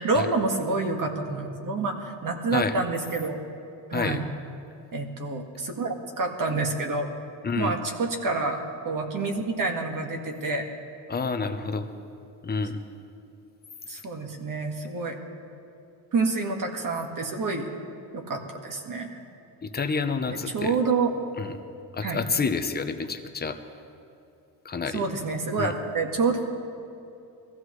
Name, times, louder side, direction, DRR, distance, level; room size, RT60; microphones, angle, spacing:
voice 1, 0.0-3.4 3.9-4.2 4.9-7.1 7.6-10.6 13.9-15.1 16.1-17.7 18.1-19.1 20.5-21.3 22.0-22.2 24.9-26.4, right 3 dB, 45° right, 3 dB, 1.8 m, -28 dB
voice 2, 3.9-4.2 7.4-7.8 11.1-11.9 12.4-12.8 19.6-20.8 21.4-21.6 21.9-23.6 24.6-25.0 25.6-25.7, left 4 dB, 20° left, 7 dB, 0.8 m, -28 dB
21.5 x 15.0 x 3.2 m, 2.6 s
cardioid pair, 120°, 44 cm